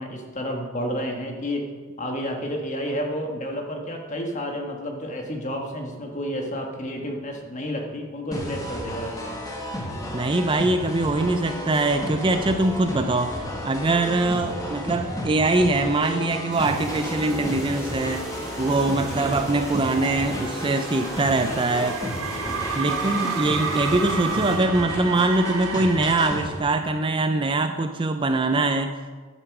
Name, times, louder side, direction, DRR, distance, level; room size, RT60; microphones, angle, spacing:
voice 1, 0.0-1.7 2.0-9.4 14.2-14.3 19.1-19.3 22.8-23.0, equal, 35° left, 2 dB, 1.5 m, -31 dB
sound 1, 8.3-26.6, equal, 15° left, 1.6 m, -33 dB
voice 2, 10.1-18.3 18.6-22.0 22.7-28.9, right 2 dB, 25° right, 7 dB, 0.4 m, -23 dB
sound 2, 16.5-24.6, equal, ahead, 2.7 m, -37 dB
sound 3, 19.9-26.3, right 5 dB, 70° right, 1.3 m, -31 dB
10.5 x 8.3 x 6.0 m, 1.4 s
head